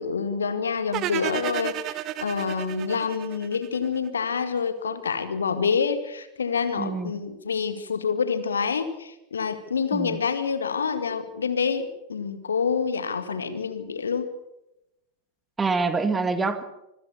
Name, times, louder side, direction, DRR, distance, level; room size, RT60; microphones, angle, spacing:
voice 1, 0.0-14.3, left 5 dB, 70° left, 11 dB, 2.0 m, -27 dB
sound 1, 0.9-4.1, right 14 dB, 35° right, 0.9 m, -32 dB
voice 2, 6.8-7.1 9.9-10.2 15.6-16.6, right 4 dB, 15° right, 11 dB, 1.8 m, -25 dB
26.0 x 15.5 x 7.1 m, 0.89 s
figure-of-eight pair, 90°, 0 cm